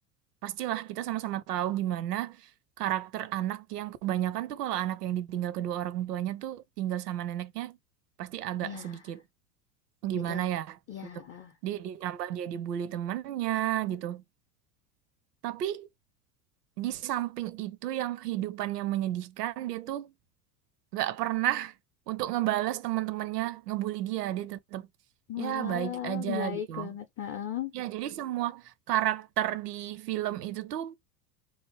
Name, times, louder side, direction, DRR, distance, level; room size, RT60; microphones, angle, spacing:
voice 1, 0.4-2.4 2.8-7.8 8.2-9.2 10.0-10.8 11.6-14.2 15.4-15.9 16.8-20.1 20.9-21.7 22.1-24.9 25.4-26.9 27.7-28.6 28.9-31.0, right 13 dB, 75° right, 0.6 m, -32 dB
voice 2, 8.6-9.1 10.2-10.5 10.9-11.5 25.3-27.7, left 10 dB, 30° left, 0.6 m, -37 dB
3.0 x 2.1 x 3.0 m
hypercardioid pair, 80°, 48 cm